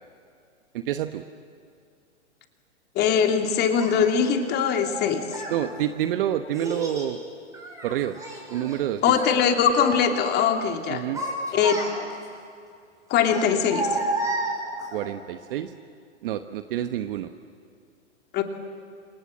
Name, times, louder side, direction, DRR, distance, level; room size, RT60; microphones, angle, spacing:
voice 1, 0.7-1.2 5.5-7.2 7.8-8.2 8.5-9.1 10.9-11.2 14.9-15.7 16.2-17.3, right 11 dB, 50° right, 9 dB, 1.1 m, -28 dB
voice 2, 2.9-5.4 9.0-11.0 11.5-11.8 13.1-14.0 18.3-18.4, left 7 dB, 30° left, 5 dB, 2.6 m, -22 dB
Child speech kid speaking, 3.8-3.9 4.8-5.6 6.5-7.1 7.5-8.8 9.1-9.4 9.8-10.4 10.9-12.2 13.2-15.0, right 2 dB, 10° right, 6.6 m, -31 dB
29.5 x 26.5 x 7.7 m, 2.4 s
hypercardioid pair, 130°, 36 cm